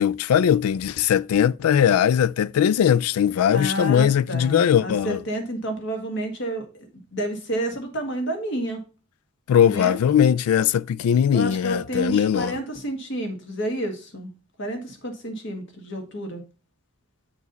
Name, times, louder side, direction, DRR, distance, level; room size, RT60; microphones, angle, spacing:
voice 1, 0.0-5.2 9.5-12.5, left 9 dB, 85° left, 0.3 m, -20 dB
voice 2, 3.5-8.8 9.7-10.0 11.3-14.3 14.6-16.4, right 1 dB, 60° left, 1.7 m, -30 dB
8.3 x 4.9 x 4.0 m
head